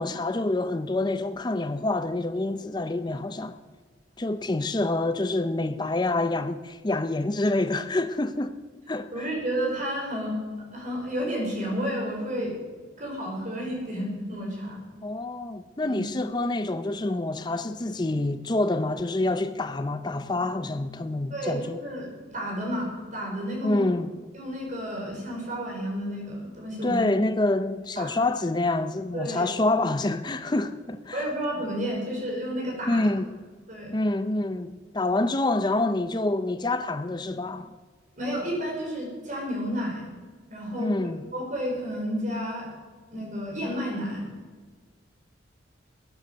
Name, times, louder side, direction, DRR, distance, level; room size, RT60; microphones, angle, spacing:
voice 1, 0.0-3.6 4.2-8.6 8.9-9.3 15.0-21.8 23.6-24.1 26.8-31.2 32.9-33.3 33.9-37.7 40.8-41.2, left 2 dB, 20° left, 0.5 m, -27 dB
voice 2, 9.1-10.4 10.7-12.6 13.0-14.8 15.8-16.0 21.3-23.8 24.3-27.0 27.9-28.2 29.1-29.5 31.1-33.0 33.7-34.0 38.2-40.1 40.5-42.7 43.1-44.3, equal, 40° right, 5.1 m, -31 dB
16.5 x 9.6 x 6.8 m
head